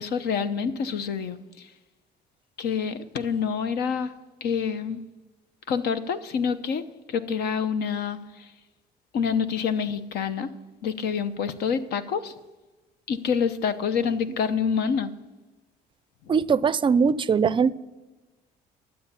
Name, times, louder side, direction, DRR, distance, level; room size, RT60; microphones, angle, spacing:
voice 1, 0.0-1.7 2.6-4.1 4.4-5.0 5.7-6.8 7.1-8.5 9.1-10.5 10.8-12.3 13.1-15.1 16.3-16.4, left 6 dB, 70° left, 0.9 m, -27 dB
voice 2, 16.3-17.7, right 6 dB, 30° right, 0.4 m, -21 dB
12.5 x 7.7 x 7.0 m
cardioid pair, 110°, 17 cm